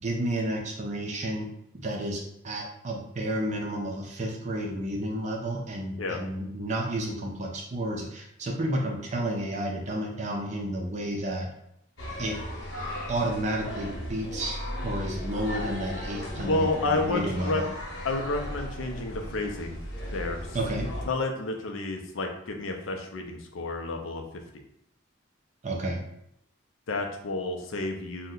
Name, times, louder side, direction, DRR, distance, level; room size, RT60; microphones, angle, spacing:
voice 1, 0.0-1.5 1.7-11.5 12.2-12.4 13.1-17.7 20.5-20.9 25.6-26.0, right 1 dB, 35° right, 1 dB, 0.4 m, -31 dB
sound 1, 12.0-21.1, equal, 60° left, 1.0 m, -36 dB
voice 2, 16.3-17.6 18.0-19.8 20.1-20.5 21.1-24.2 26.9-28.3, left 2 dB, 80° left, 3 dB, 0.5 m, -30 dB
2.7 x 2.1 x 3.7 m, 0.76 s
head